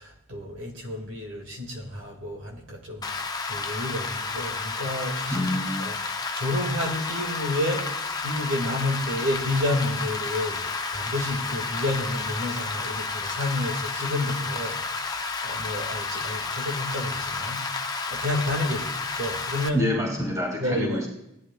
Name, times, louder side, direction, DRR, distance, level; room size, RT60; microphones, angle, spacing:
voice 1, 0.0-5.5 5.8-19.9 20.6-21.0, left 1 dB, 65° right, 1 dB, 2.1 m, -30 dB
Rain, 3.0-19.7, left 4 dB, 20° left, 0.7 m, -31 dB
voice 2, 5.3-5.9 19.7-21.1, left 1 dB, 15° right, -1 dB, 2.3 m, -27 dB
17.5 x 11.5 x 2.4 m, 0.85 s
head